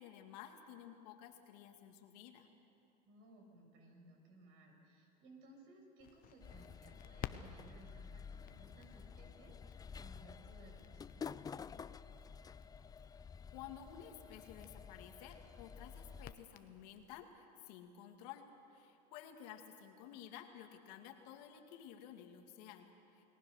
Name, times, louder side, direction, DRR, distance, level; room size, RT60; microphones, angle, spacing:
voice 1, 0.0-2.5 13.5-23.2, left 9 dB, 70° left, 5 dB, 2.3 m, -53 dB
voice 2, 3.0-11.5, right 1 dB, 65° right, 2 dB, 6.7 m, -61 dB
Crackle, 6.0-17.2, left 10 dB, 40° left, 1.1 m, -55 dB
sound 1, 6.4-16.3, left 6 dB, 20° left, 0.5 m, -51 dB
29.0 x 19.0 x 6.6 m, 2.7 s
hypercardioid pair, 95°, 21 cm